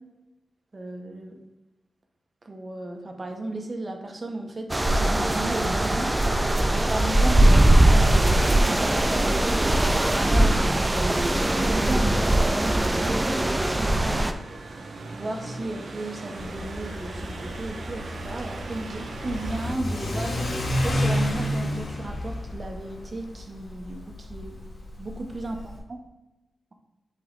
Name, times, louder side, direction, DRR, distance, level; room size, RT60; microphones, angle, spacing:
voice 1, 0.7-1.4 2.4-6.1 6.7-8.5 8.8-14.2 15.1-24.6 24.9-25.6, right 2 dB, 40° right, 4 dB, 1.0 m, -35 dB
sound 1, 4.7-14.3, right 1 dB, 20° right, 0.5 m, -20 dB
sound 2, 5.1-19.7, right 3 dB, 70° right, 0.7 m, -41 dB
Car / Accelerating revving vroom, 16.4-25.8, left 1 dB, 80° left, 2.2 m, -30 dB
7.6 x 3.1 x 3.9 m, 1.0 s
cardioid pair, 70°, 0 cm